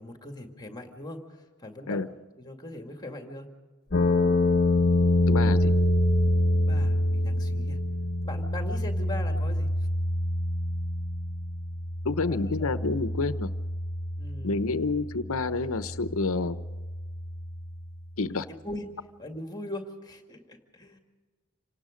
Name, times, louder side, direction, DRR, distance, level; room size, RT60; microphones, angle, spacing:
voice 1, 0.0-3.5 6.7-7.8 8.2-9.7 12.3-12.7 14.2-14.9 18.5-18.9 19.2-21.0, left 1 dB, 20° left, 4 dB, 2.1 m, -40 dB
sound 1, 3.9-18.0, left 1 dB, 45° left, 1.2 m, -27 dB
voice 2, 5.3-5.7 12.0-13.5 14.4-16.6 18.2-18.5, left 3 dB, 65° left, 11 dB, 0.8 m, -28 dB
27.0 x 18.5 x 5.1 m, 1.3 s
head